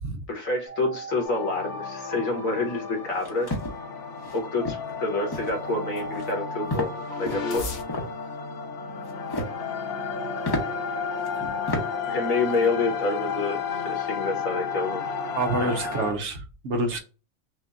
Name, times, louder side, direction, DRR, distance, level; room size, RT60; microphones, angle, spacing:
voice 1, 0.3-3.5 4.3-7.7 12.1-15.0 15.6-15.7, left 3 dB, 80° left, 1.7 m, -28 dB
Alarm, 0.7-3.3 4.6-8.3 9.6-12.8, equal, 25° right, 1.3 m, -41 dB
sound 1, 1.2-16.1, left 5 dB, 65° left, 1.1 m, -33 dB
sound 2, 3.1-3.7 4.2-4.4 4.6-4.9 5.3-5.6 6.0-6.3 6.7-6.9 7.2-8.1 9.0-9.6 10.0-10.1 10.4-10.6 11.3-11.4 11.7-11.9 12.2-12.6, left 1 dB, 20° left, 0.7 m, -31 dB
voice 2, 15.3-17.0, right 2 dB, 65° right, 1.1 m, -27 dB
6.0 x 2.2 x 2.5 m
omnidirectional pair, 1.4 m